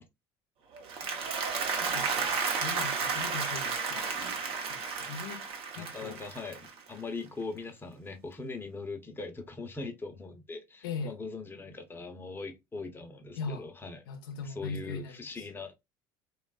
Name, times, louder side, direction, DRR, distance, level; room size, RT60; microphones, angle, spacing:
Applause, 0.7-7.1, right 5 dB, 50° right, 0.9 m, -33 dB
voice 1, 1.3-4.1 4.7-5.5 5.7-6.2 10.8-11.2 13.4-13.7 14.1-15.4, left 4 dB, 90° left, 0.5 m, -40 dB
voice 2, 5.8-14.0 14.4-15.7, left 3 dB, 20° left, 0.7 m, -41 dB
3.1 x 2.3 x 2.3 m
supercardioid pair, 85°, 12 cm